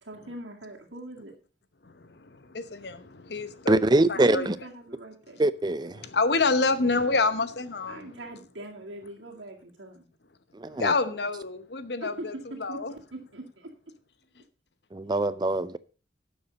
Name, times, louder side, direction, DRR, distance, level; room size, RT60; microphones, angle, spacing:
voice 1, 0.0-1.3 4.1-5.4 7.9-10.1 12.0-12.3 12.7-13.7, right 1 dB, 80° right, 2.2 m, -42 dB
voice 2, 1.8-3.8 4.1-4.5 6.0-8.1 10.6-12.9, left 3 dB, 60° left, 1.0 m, -28 dB
voice 3, 3.7-4.6 5.4-6.0 10.5-10.9 14.9-15.8, right 2 dB, 25° right, 0.5 m, -24 dB
12.0 x 7.1 x 5.3 m
head